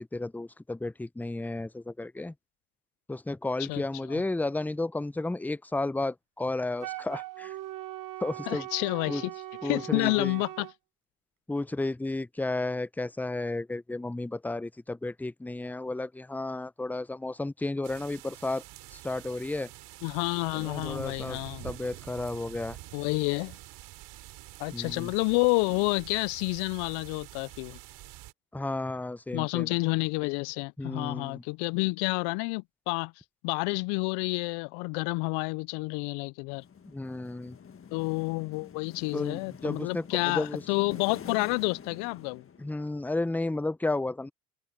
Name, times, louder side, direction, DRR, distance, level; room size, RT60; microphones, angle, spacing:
voice 1, 0.0-2.3 3.1-7.5 8.2-8.7 9.1-9.2 9.6-10.4 11.5-18.6 18.9-19.7 20.5-21.4 21.6-22.8 24.7-25.1 28.5-29.7 30.8-31.4 36.9-37.6 39.1-40.6 42.6-44.3, left 2 dB, 5° left, 0.6 m, -33 dB
Wind instrument woodwind instrument, 6.8-10.7, right 15 dB, 50° right, 1.2 m, -40 dB
voice 2, 8.5-9.3 9.6-10.7 20.0-21.6 22.9-23.6 24.6-27.8 29.3-33.1 33.4-36.6 37.9-42.4, left 29 dB, 70° left, 0.6 m, -29 dB
sound 1, 17.8-28.3, right 18 dB, 65° right, 3.4 m, -47 dB
sound 2, 36.5-43.0, left 7 dB, 30° left, 1.7 m, -47 dB
open air
hypercardioid pair, 75°, 42 cm